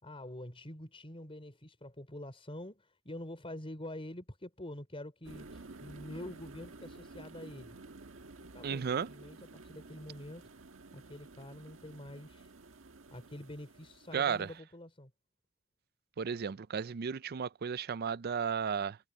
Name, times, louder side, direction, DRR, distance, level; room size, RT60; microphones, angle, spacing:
voice 1, 0.0-7.8 8.5-10.4 10.9-12.5 13.1-15.1, left 1 dB, 30° left, 4.8 m, -46 dB
sound 1, 5.2-14.6, right 3 dB, 80° right, 1.5 m, -52 dB
voice 2, 8.6-9.1 14.1-14.5 16.2-19.0, right 6 dB, 50° right, 0.4 m, -34 dB
head